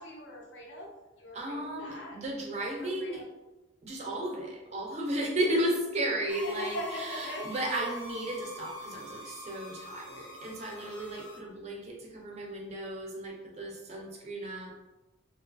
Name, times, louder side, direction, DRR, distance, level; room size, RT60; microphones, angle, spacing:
voice 1, 0.0-2.2 2.6-3.3 5.4-5.5 6.4-7.7, equal, 60° left, 0 dB, 0.5 m, -41 dB
voice 2, 1.3-3.2 3.8-14.7, right 1 dB, 30° right, 0 dB, 0.4 m, -34 dB
sound 1, 6.3-11.4, left 1 dB, 15° left, 0.5 m, -44 dB
2.4 x 2.3 x 2.4 m, 1.1 s
head